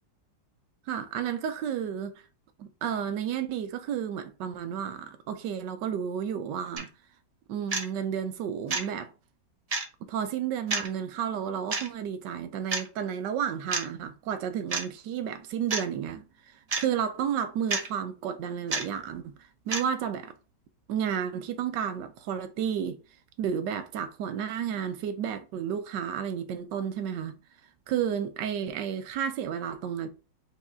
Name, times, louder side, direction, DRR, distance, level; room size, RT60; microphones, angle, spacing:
voice 1, 0.9-2.2 2.6-6.9 7.5-9.1 10.0-20.3 20.9-23.0 23.4-27.4 27.9-30.1, right 8 dB, 80° right, 1.2 m, -32 dB
sound 1, 6.8-6.9 7.7-7.9 8.7-8.9 9.7-9.8 10.7-10.9 11.7-11.9 12.7-12.9 13.7-13.8 14.7-14.8 15.7-15.9 16.7-16.8 17.7-17.9 18.7-18.8 19.7-19.9, right 3 dB, 55° right, 0.4 m, -29 dB
4.7 x 2.7 x 3.6 m
omnidirectional pair, 1.9 m